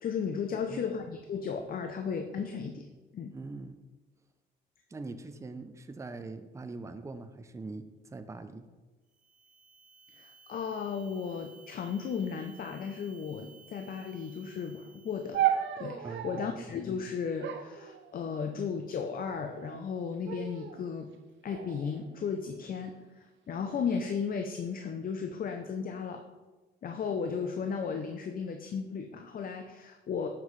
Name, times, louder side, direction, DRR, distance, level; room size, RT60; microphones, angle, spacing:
voice 1, 0.0-2.9 3.1-3.3 10.2-15.4 15.8-21.1 21.4-26.2 26.8-30.3, left 6 dB, 45° left, 5 dB, 0.5 m, -35 dB
voice 2, 0.5-0.9 3.3-3.8 4.9-8.7 16.0-16.5, right 3 dB, 15° right, 9 dB, 0.5 m, -42 dB
sound 1, 9.1-15.7, right 5 dB, 40° right, 1.1 m, -58 dB
sound 2, 15.3-16.6 17.4-18.6 19.4-19.9 20.2-20.8 21.5-22.8 23.6-24.0, right 11 dB, 65° right, 0.6 m, -35 dB
7.0 x 5.8 x 3.2 m, 1.2 s
cardioid pair, 90°, 20 cm